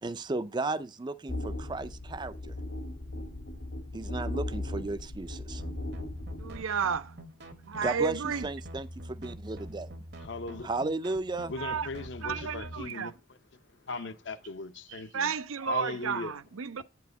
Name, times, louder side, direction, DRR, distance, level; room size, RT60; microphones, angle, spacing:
voice 1, 0.0-2.6 3.9-5.6 7.8-9.9 10.6-11.5, right 2 dB, 20° right, 0.4 m, -34 dB
sound 1, 1.3-6.6, left 1 dB, 80° left, 2.0 m, -37 dB
sound 2, 5.6-12.9, equal, 55° right, 1.0 m, -45 dB
voice 2, 6.4-7.1 7.7-8.5 11.6-11.9 12.2-13.1 15.1-16.8, right 6 dB, 90° right, 0.5 m, -32 dB
voice 3, 10.2-10.7 11.5-13.2 13.8-15.3 15.7-16.3, left 3 dB, 60° left, 0.7 m, -38 dB
8.9 x 4.7 x 5.2 m
head